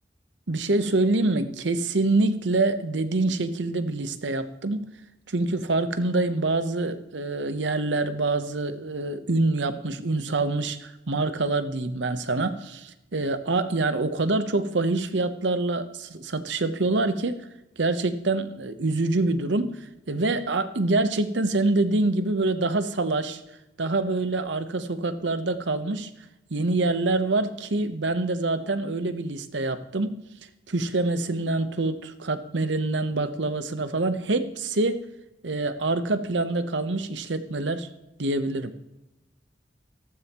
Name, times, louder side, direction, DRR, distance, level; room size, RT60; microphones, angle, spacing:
voice 1, 0.5-4.9 5.3-17.4 17.8-19.7 20.1-23.4 23.8-26.1 26.5-30.2 30.7-35.0 35.4-37.9 38.2-38.7, right 2 dB, 70° right, 11 dB, 0.9 m, -25 dB
14.5 x 13.0 x 3.0 m, 0.94 s
head